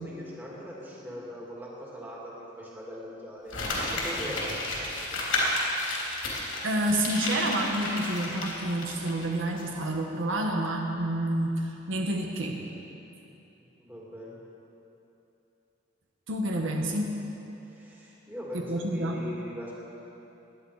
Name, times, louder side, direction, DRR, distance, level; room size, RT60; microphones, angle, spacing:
voice 1, 0.0-3.5 3.9-4.5 13.8-14.4 17.6-19.7, equal, 10° right, -5 dB, 2.5 m, -40 dB
Crumpling crinkling, 3.5-9.3 9.6-9.7, left 1 dB, 80° left, 3.5 m, -31 dB
voice 2, 6.6-12.6 16.3-17.2 18.5-19.2, right 1 dB, 80° right, 1 dB, 1.5 m, -29 dB
19.0 x 10.5 x 4.9 m, 2.9 s
head